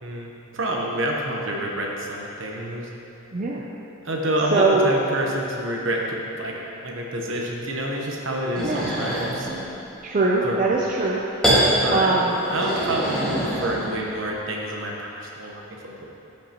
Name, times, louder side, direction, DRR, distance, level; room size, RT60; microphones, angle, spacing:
voice 1, 0.0-2.9 4.0-9.5 10.4-10.6 11.7-12.2 12.5-16.1, right 1 dB, 65° right, -1 dB, 1.0 m, -28 dB
voice 2, 3.3-3.6 4.5-4.9 8.6-8.9 10.0-11.2 11.5-12.3, right 3 dB, 40° right, -3 dB, 0.5 m, -22 dB
sound 1, 8.5-9.6 11.4-11.7 12.3-14.1, right 1 dB, 5° left, 1.8 m, -24 dB
13.0 x 5.3 x 2.9 m, 2.8 s
head